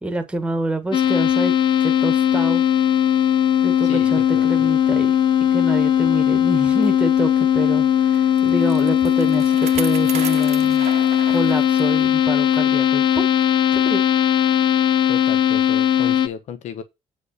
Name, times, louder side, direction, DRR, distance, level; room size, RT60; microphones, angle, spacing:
voice 1, 0.0-1.5 1.8-2.6 3.6-5.1 5.4-10.9 11.3-13.0 13.7-14.0, right 2 dB, 10° right, 1.3 m, -27 dB
sound 1, 0.9-16.3, left 10 dB, 40° left, 0.6 m, -18 dB
voice 2, 3.8-4.7 15.1-16.8, left 8 dB, 65° left, 1.1 m, -34 dB
Bicycle, 8.1-12.1 12.5-12.6 13.4-13.5, right 10 dB, 65° right, 1.0 m, -35 dB
8.4 x 5.1 x 6.5 m
cardioid pair, 180°, 13 cm